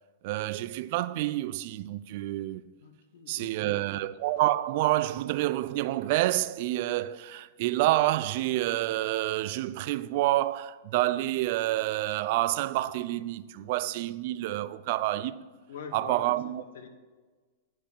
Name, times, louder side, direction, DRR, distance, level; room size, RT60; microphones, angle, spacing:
voice 1, 0.2-2.7 3.3-15.4 15.9-16.6, right 16 dB, 55° right, 0.4 m, -28 dB
voice 2, 2.8-3.8 15.7-16.9, left 6 dB, 70° left, 1.1 m, -44 dB
9.2 x 4.9 x 7.3 m
hypercardioid pair, 115°, 0 cm